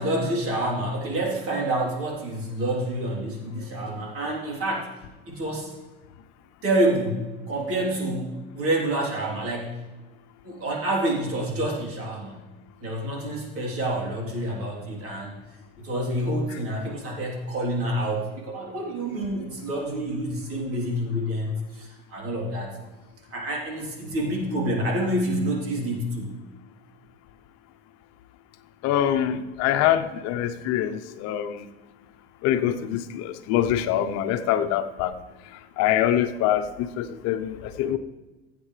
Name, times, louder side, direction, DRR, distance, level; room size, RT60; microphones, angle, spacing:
voice 1, 0.0-4.9 5.3-5.7 6.6-9.8 10.4-12.4 12.8-15.4 15.8-22.8 23.3-26.3, right 1 dB, 50° right, -2 dB, 3.5 m, -28 dB
voice 2, 28.8-31.6 32.4-35.1 35.8-36.7 37.0-38.0, left 11 dB, 60° left, 9 dB, 0.9 m, -24 dB
15.5 x 8.5 x 3.3 m, 1.2 s
supercardioid pair, 95°, 30 cm